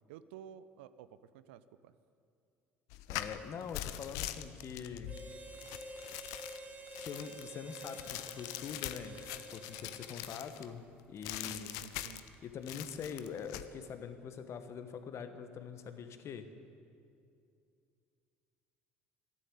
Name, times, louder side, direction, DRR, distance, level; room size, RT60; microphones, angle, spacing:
voice 1, 0.1-1.9 11.3-12.3, right 9 dB, 70° right, 14 dB, 0.5 m, -52 dB
sound 1, 2.9-10.7 11.2-12.3 12.6-13.7, left 13 dB, 65° left, 0.6 m, -43 dB
voice 2, 3.1-5.2 7.0-10.8 11.1-11.7 12.4-16.5, left 6 dB, 45° left, 9 dB, 1.2 m, -44 dB
Harmonica, 5.0-10.7, right 1 dB, 25° right, 1.9 m, -50 dB
13.0 x 10.0 x 8.4 m, 2.5 s
figure-of-eight pair, 60°, 6 cm